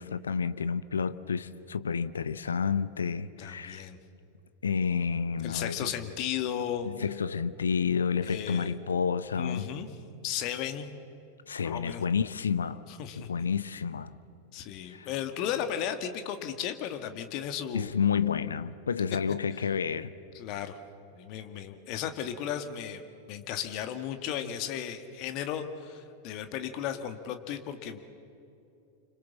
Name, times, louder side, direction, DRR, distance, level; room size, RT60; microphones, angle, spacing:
voice 1, 0.0-3.9 4.6-5.9 6.8-9.7 11.5-12.8 13.3-14.1 14.9-15.1 17.7-20.1, left 6 dB, 70° left, 0.8 m, -30 dB
voice 2, 3.4-4.0 5.4-6.9 8.2-8.8 9.4-9.9 10.2-10.9 11.6-12.0 12.9-13.3 14.5-17.9 20.3-20.8 21.2-23.0 23.3-28.0, left 9 dB, 40° left, 1.8 m, -35 dB
29.5 x 26.0 x 7.3 m
figure-of-eight pair, 90°, 0 cm